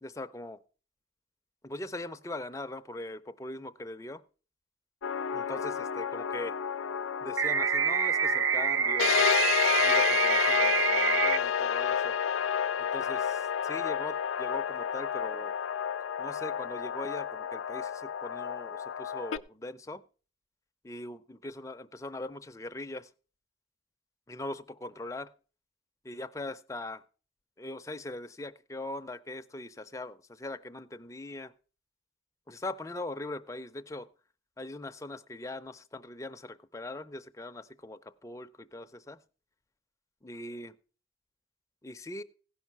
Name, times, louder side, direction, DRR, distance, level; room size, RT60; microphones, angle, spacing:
voice 1, 0.0-0.6 1.6-4.2 5.3-6.5 7.2-9.4 9.8-12.2 12.8-15.5 16.2-20.0 20.8-23.1 24.3-25.3 26.0-27.0 27.6-31.5 32.5-34.1 34.6-39.2 40.2-40.8 41.8-42.2, left 2 dB, 15° left, 0.5 m, -41 dB
sound 1, 5.0-19.4, left 8 dB, 90° left, 0.5 m, -30 dB
sound 2, 7.4-11.4, right 8 dB, 80° right, 0.6 m, -27 dB
16.0 x 5.5 x 5.9 m
head